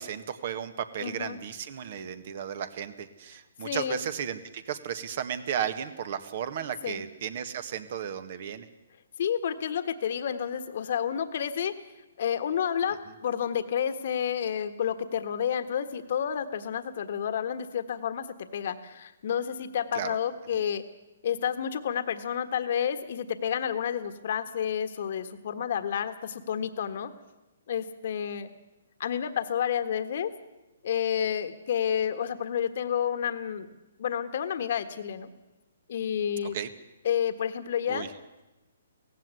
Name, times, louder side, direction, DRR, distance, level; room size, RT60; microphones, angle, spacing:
voice 1, 0.0-8.7 19.9-20.2 36.4-36.7 37.9-38.1, right 8 dB, 50° right, 11 dB, 1.7 m, -34 dB
voice 2, 1.0-1.4 3.6-4.0 6.8-7.0 9.2-11.7 12.2-20.8 21.2-27.1 27.7-28.5 29.0-30.3 30.8-33.7 34.0-35.3 35.9-36.6 37.0-38.1, left 8 dB, 55° left, 10 dB, 1.5 m, -30 dB
17.0 x 16.0 x 9.7 m, 1.0 s
hypercardioid pair, 140°, 0 cm